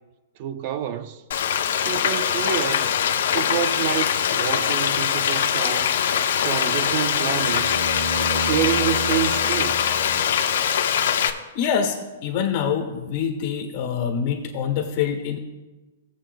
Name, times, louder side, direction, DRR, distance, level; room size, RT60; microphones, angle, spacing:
voice 1, 0.4-1.2 1.9-2.9 3.3-6.0 6.4-7.9 8.4-9.9, right 10 dB, 35° right, 0.3 m, -28 dB
Frying (food), 1.3-11.3, left 8 dB, 60° left, 0.7 m, -22 dB
sound 1, 6.7-10.7 13.1-13.2, right 3 dB, 70° right, 1.9 m, -34 dB
voice 2, 11.5-12.0 12.2-15.4, left 7 dB, 35° left, 1.3 m, -25 dB
16.5 x 7.5 x 2.2 m
hypercardioid pair, 170°, 0 cm